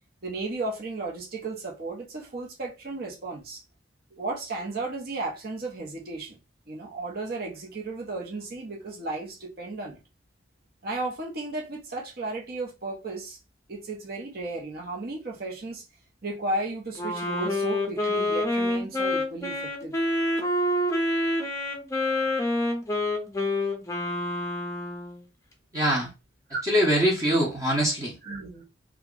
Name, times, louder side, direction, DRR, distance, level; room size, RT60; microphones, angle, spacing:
voice 1, 0.2-3.6 4.1-6.4 6.7-10.0 10.8-13.4 13.7-15.8 16.2-20.0 26.5-26.6 28.2-28.6, right 2 dB, 50° right, 0.9 m, -34 dB
Wind instrument woodwind instrument, 17.0-25.2, left 1 dB, 15° left, 0.6 m, -27 dB
voice 2, 25.7-26.1 26.6-28.1, equal, 15° right, 0.8 m, -23 dB
2.9 x 2.4 x 3.7 m
head